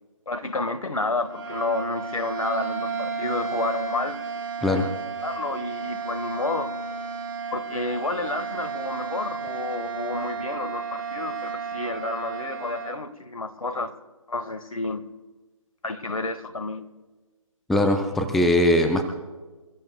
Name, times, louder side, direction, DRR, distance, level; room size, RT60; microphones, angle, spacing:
voice 1, 0.3-4.2 4.7-4.8 5.2-6.7 7.5-13.9 14.3-15.0 15.8-16.8, left 2 dB, 80° left, 10 dB, 1.6 m, -30 dB
sound 1, 1.2-13.0, right 5 dB, 40° right, 5.8 m, -33 dB
voice 2, 17.7-19.1, left 1 dB, ahead, 5 dB, 0.5 m, -20 dB
28.0 x 14.5 x 2.3 m, 1.3 s
figure-of-eight pair, 150°, 17 cm